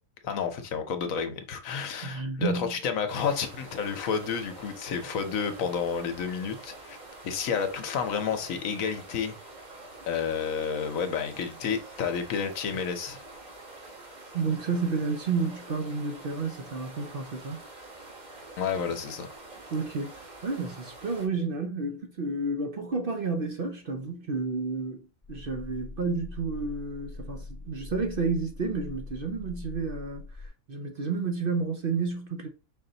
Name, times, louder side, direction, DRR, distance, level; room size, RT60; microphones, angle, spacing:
voice 1, 0.2-7.0 7.2-9.4 10.1-13.2 18.6-19.3, left 6 dB, 75° left, 1.2 m, -30 dB
voice 2, 2.0-2.7 14.3-17.6 19.7-20.1 20.4-32.5, right 4 dB, 50° right, 0.7 m, -31 dB
sound 1, 3.1-21.3, right 2 dB, 35° right, 1.2 m, -47 dB
sound 2, 25.2-30.5, left 3 dB, 15° left, 0.7 m, -42 dB
5.4 x 2.6 x 3.9 m
omnidirectional pair, 1.4 m